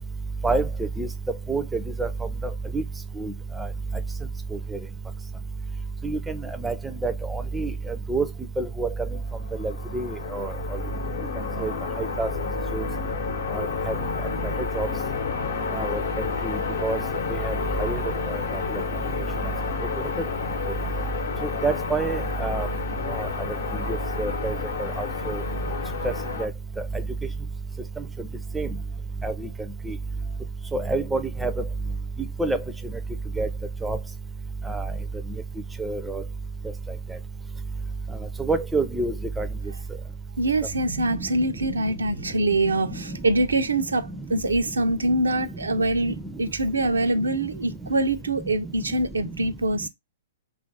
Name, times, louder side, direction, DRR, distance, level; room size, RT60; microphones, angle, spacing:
voice 1, 6.0-6.7 7.0-7.7 8.1-8.3 8.6-8.9 9.6-10.5 11.6-11.7 12.0-12.3 12.7-12.8 13.5-13.9 14.7-14.9 15.7-16.0 16.4-17.0 17.3-17.5 17.8-18.0 21.6-22.7 23.1-23.3 23.9-24.6 25.0-25.4 26.4-26.5 28.5-28.7 29.2-29.3 29.9-30.0 30.7-31.5 32.4-32.6 33.4-33.5 33.8-34.0 34.7-34.8 35.8-36.2 38.4-39.5, right 3 dB, 5° right, 0.4 m, -27 dB
sound 1, 9.3-26.5, left 6 dB, 70° left, 0.8 m, -31 dB
voice 2, 40.4-49.9, right 2 dB, 90° right, 0.5 m, -24 dB
2.9 x 2.4 x 3.8 m
hypercardioid pair, 120°, 0 cm